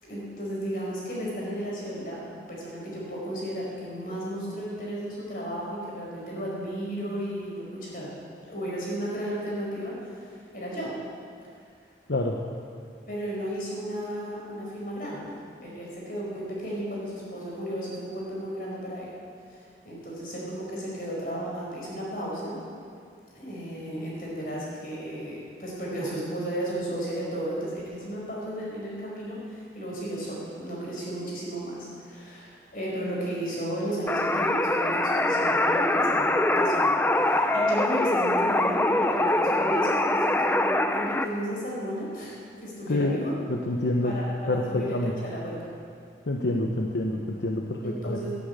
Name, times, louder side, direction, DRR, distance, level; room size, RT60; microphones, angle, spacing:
voice 1, 0.0-2.2 2.5-8.1 8.5-10.9 13.1-19.2 19.5-22.6 23.3-43.3 44.0-45.7 47.8-48.4, right 1 dB, 50° left, -4 dB, 4.9 m, -34 dB
sound 1, 34.1-41.3, left 1 dB, 10° left, 0.5 m, -23 dB
voice 2, 43.5-44.2 44.5-45.1 46.3-48.2, left 1 dB, 80° left, 1 dB, 1.0 m, -27 dB
12.5 x 10.5 x 8.2 m, 2.3 s
head